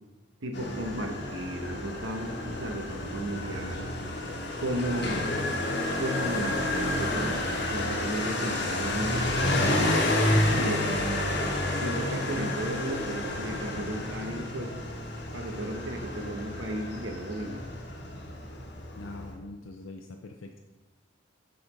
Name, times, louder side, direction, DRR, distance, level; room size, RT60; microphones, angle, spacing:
voice 1, 0.4-3.9 4.6-5.4 6.0-9.3 10.5-10.9 11.8-14.7 15.3-17.6, right 1 dB, 80° right, 3 dB, 0.9 m, -34 dB
Motorcycle, 0.5-19.3, left 1 dB, 55° left, 1.2 m, -30 dB
voice 2, 10.3-10.7 19.0-20.6, left 3 dB, 80° left, 3 dB, 0.5 m, -40 dB
7.0 x 4.2 x 5.0 m, 1.2 s
head